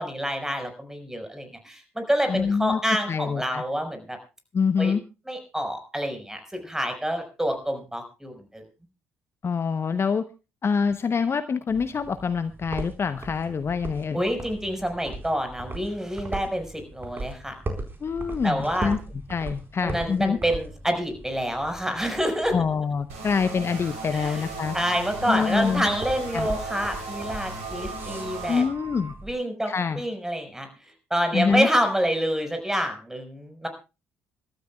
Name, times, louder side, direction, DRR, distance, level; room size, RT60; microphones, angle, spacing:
voice 1, 0.0-4.2 4.8-4.9 5.3-8.6 14.1-17.6 18.4-18.9 19.8-22.6 24.1-24.5 24.7-28.6 29.2-33.7, equal, 5° right, 6 dB, 5.3 m, -27 dB
voice 2, 2.3-3.6 4.5-5.0 9.4-10.2 10.6-14.2 18.0-19.0 19.3-20.4 22.5-24.7 25.3-25.8 26.3-26.5 28.5-29.1 29.7-30.0 31.3-31.7, left 5 dB, 35° left, 12 dB, 0.9 m, -25 dB
sound 1, 11.7-29.3, right 2 dB, 30° right, 4.4 m, -39 dB
sound 2, 23.1-28.6, right 3 dB, 80° right, 3.6 m, -37 dB
sound 3, 24.2-29.2, right 3 dB, 55° right, 3.2 m, -43 dB
27.5 x 13.0 x 2.4 m, 0.31 s
figure-of-eight pair, 50°, 7 cm